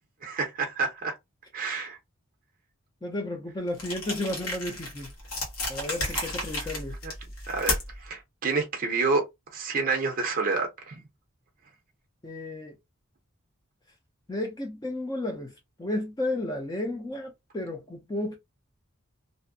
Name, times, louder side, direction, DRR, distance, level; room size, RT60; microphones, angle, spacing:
voice 1, 0.2-1.2 1.5-2.0 6.2-6.7 7.0-7.1 7.5-9.2 9.5-11.0, right 4 dB, 40° right, 0.5 m, -29 dB
voice 2, 3.0-5.1 5.7-6.9 12.2-12.8 14.3-15.5 15.8-18.4, left 1 dB, 20° left, 0.4 m, -32 dB
sound 1, 3.7-8.1, left 2 dB, 80° left, 1.1 m, -33 dB
2.5 x 2.0 x 2.5 m
head